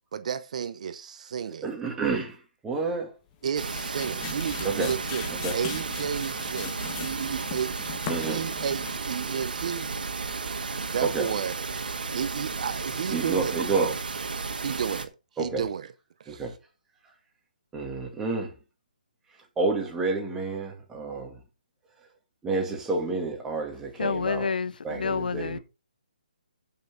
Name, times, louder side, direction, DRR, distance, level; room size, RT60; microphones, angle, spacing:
voice 1, 0.1-1.7 3.4-5.2 5.5-7.9 8.2-9.9 10.9-11.6 12.1-14.0 14.6-15.1 15.4-15.9 16.2-16.4, right 7 dB, 50° right, 0.7 m, -32 dB
voice 2, 1.6-3.2 4.6-4.9 5.4-5.6 8.1-8.5 11.0-11.3 13.1-13.9 15.4-15.7 16.3-16.6 17.7-18.6 19.6-21.4 22.4-24.5 24.8-25.6, right 3 dB, 10° right, 2.2 m, -29 dB
sound 1, 3.3-9.1, left 7 dB, 25° left, 1.7 m, -40 dB
sound 2, 3.6-15.1, right 4 dB, 75° right, 1.7 m, -33 dB
voice 3, 24.0-25.6, left 5 dB, 70° left, 0.6 m, -28 dB
14.5 x 5.9 x 3.9 m
hypercardioid pair, 150°, 5 cm